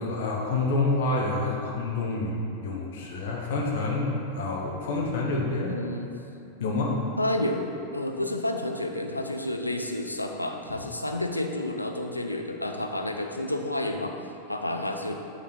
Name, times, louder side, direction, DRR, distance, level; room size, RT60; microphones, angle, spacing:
voice 1, 0.0-5.7 6.6-7.0, left 2 dB, 55° left, -3 dB, 0.8 m, -28 dB
voice 2, 5.7-6.1 7.2-14.1 14.5-15.2, left 1 dB, 85° left, 3 dB, 0.4 m, -30 dB
8.3 x 3.1 x 4.0 m, 2.6 s
figure-of-eight pair, 90°, 0 cm